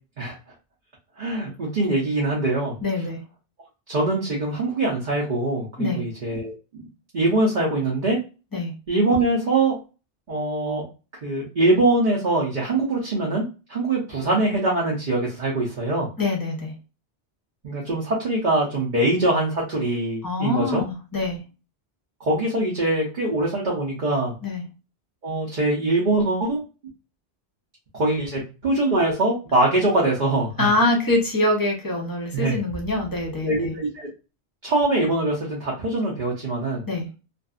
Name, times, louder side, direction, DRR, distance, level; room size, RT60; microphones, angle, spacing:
voice 1, 1.2-2.8 3.9-6.9 7.1-8.2 8.9-9.8 10.3-10.9 11.2-16.1 17.6-20.8 22.2-24.3 25.2-26.6 27.9-30.7 32.3-32.6 33.4-34.1 34.6-36.8, right 2 dB, 50° right, -3 dB, 0.8 m, -23 dB
voice 2, 2.8-3.2 5.8-6.0 8.5-8.7 16.2-16.7 20.2-21.4 24.4-24.6 30.6-33.8 36.9-37.1, left 2 dB, 20° left, 0 dB, 0.7 m, -24 dB
2.6 x 2.5 x 2.3 m, 0.31 s
omnidirectional pair, 1.1 m